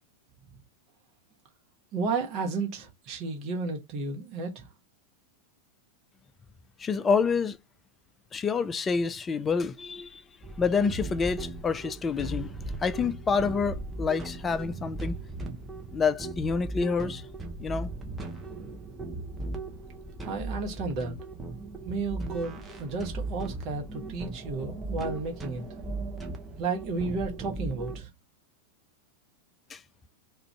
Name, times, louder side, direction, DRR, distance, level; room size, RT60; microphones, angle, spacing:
voice 1, 1.9-4.7 20.2-21.2 21.8-25.7 26.6-28.1, right 4 dB, 35° right, 0.9 m, -32 dB
voice 2, 6.8-7.6 8.3-10.2 10.6-15.2 15.9-17.2 17.6-17.9 29.7-29.8, left 5 dB, 20° left, 0.3 m, -28 dB
sound 1, 10.4-28.0, right 2 dB, 10° right, 0.7 m, -37 dB
2.4 x 2.4 x 3.2 m
figure-of-eight pair, 90°, 0 cm